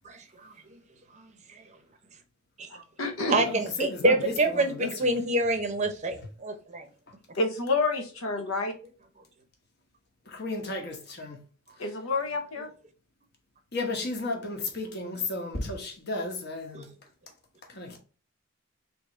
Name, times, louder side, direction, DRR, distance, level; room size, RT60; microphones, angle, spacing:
voice 1, 0.0-0.8 1.1-1.8 2.6-2.8 3.3-6.9 16.7-16.9, right 2 dB, 35° right, 0.6 m, -28 dB
voice 2, 2.7-3.5 7.4-8.7 11.8-12.7, left 3 dB, 85° left, 0.9 m, -29 dB
voice 3, 3.5-4.9 10.3-11.4 13.7-16.9 17.7-18.0, left 2 dB, 50° left, 1.0 m, -33 dB
3.5 x 2.8 x 4.4 m
head